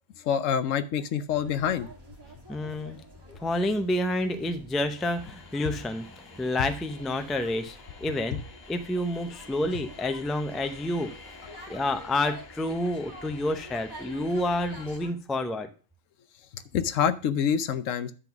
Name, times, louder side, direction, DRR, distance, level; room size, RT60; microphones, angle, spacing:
voice 1, 0.2-1.9 16.5-18.1, left 8 dB, 75° left, 13 dB, 1.0 m, -26 dB
sound 1, 1.3-15.1, equal, 20° right, 1.9 m, -49 dB
voice 2, 2.5-3.0 3.3-8.4 8.7-11.1 11.7-15.7, left 1 dB, ahead, 9 dB, 0.4 m, -29 dB
sound 2, 5.0-15.0, left 4 dB, 50° left, 1.3 m, -50 dB
9.8 x 3.9 x 5.8 m, 0.37 s
omnidirectional pair, 1.4 m